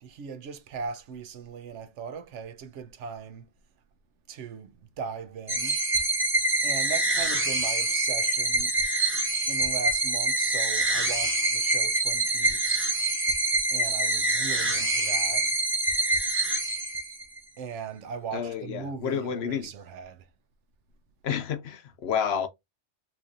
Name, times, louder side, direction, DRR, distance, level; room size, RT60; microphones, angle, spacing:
voice 1, 0.0-3.5 4.3-5.8 6.6-8.8 9.5-12.9 13.7-15.5 17.6-20.3, right 6 dB, 80° right, 1.0 m, -38 dB
sound 1, 5.5-17.4, right 2 dB, 10° right, 0.7 m, -26 dB
voice 2, 18.3-19.7 21.2-22.5, left 7 dB, 65° left, 0.8 m, -30 dB
4.3 x 2.6 x 2.6 m
omnidirectional pair, 1.2 m